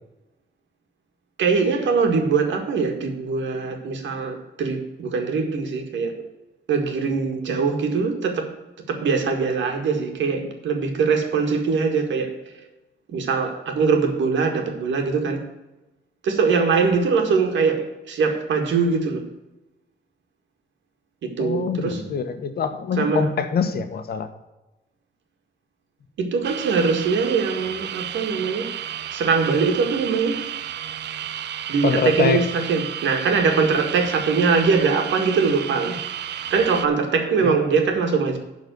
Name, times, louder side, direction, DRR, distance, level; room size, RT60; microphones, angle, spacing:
voice 1, 1.4-6.3 6.7-8.5 8.9-12.6 13.1-15.4 16.2-19.2 21.4-22.1 23.0-23.3 26.2-28.7 29.1-30.5 31.7-36.0 36.5-38.4, right 5 dB, 90° right, 1.9 m, -22 dB
voice 2, 21.4-24.3 31.8-32.4 37.4-37.6, left 6 dB, 55° left, 1.1 m, -24 dB
sound 1, 26.4-36.9, right 10 dB, 65° right, 0.5 m, -32 dB
11.5 x 4.1 x 7.8 m
wide cardioid pair, 170°, 19 cm